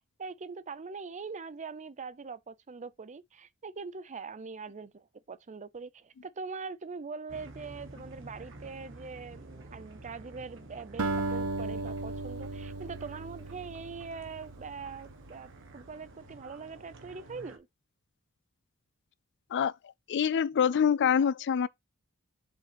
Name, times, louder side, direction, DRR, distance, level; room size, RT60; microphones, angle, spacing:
voice 1, 0.0-17.7, right 4 dB, 35° right, 0.5 m, -42 dB
sound 1, 7.3-17.6, right 2 dB, 60° right, 1.7 m, -50 dB
Acoustic guitar, 11.0-15.4, right 2 dB, 80° right, 0.9 m, -36 dB
voice 2, 20.1-21.7, left 7 dB, 55° left, 0.4 m, -25 dB
7.5 x 5.4 x 3.0 m
head